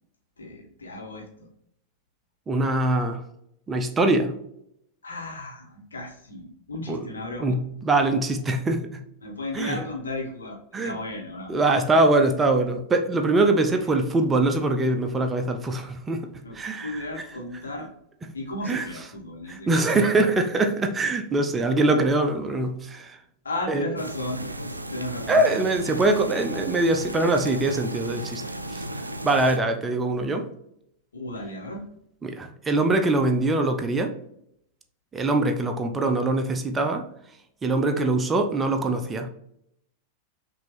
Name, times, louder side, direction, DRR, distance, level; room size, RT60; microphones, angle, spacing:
voice 1, 0.4-1.3 5.0-7.6 9.2-11.5 13.7-13.8 16.4-17.9 18.3-20.4 23.4-25.6 31.1-31.8, left 1 dB, 70° left, -1 dB, 1.3 m, -34 dB
voice 2, 2.5-3.2 3.7-4.3 6.9-7.0 7.4-8.9 9.5-9.8 10.7-11.0 11.5-16.3 16.5-17.0 18.7-18.9 19.5-23.2 23.7-23.9 25.3-28.4 28.7-28.8 29.2-30.5 32.2-34.1 35.1-37.0 37.6-39.3, right 2 dB, 15° right, 5 dB, 0.5 m, -23 dB
sound 1, 24.0-29.6, right 1 dB, 85° right, 0.4 m, -35 dB
5.9 x 2.7 x 3.2 m, 0.75 s
figure-of-eight pair, 90°, 0 cm